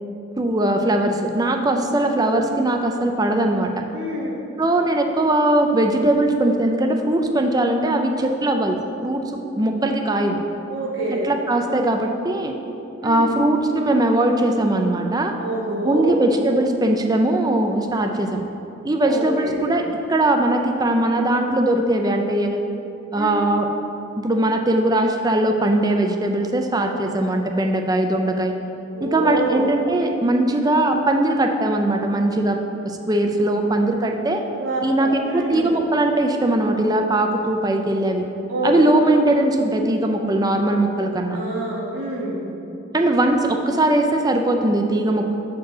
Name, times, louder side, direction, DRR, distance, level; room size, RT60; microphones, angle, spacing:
voice 1, 0.3-3.8 4.6-9.3 9.6-10.4 11.1-12.5 13.0-15.4 15.8-18.4 18.8-22.6 23.1-23.7 24.2-28.5 29.0-32.6 32.8-34.4 34.8-38.2 38.6-41.4 42.9-45.3, right 1 dB, 20° right, 4 dB, 0.5 m, -20 dB
voice 2, 3.9-4.4 10.7-11.3 13.0-13.3 15.4-16.2 19.0-19.6 23.1-23.3 28.9-29.6 34.6-35.7 38.5-38.7 41.3-42.4, right 1 dB, 70° right, -4 dB, 1.4 m, -27 dB
6.6 x 4.5 x 6.7 m, 2.9 s
head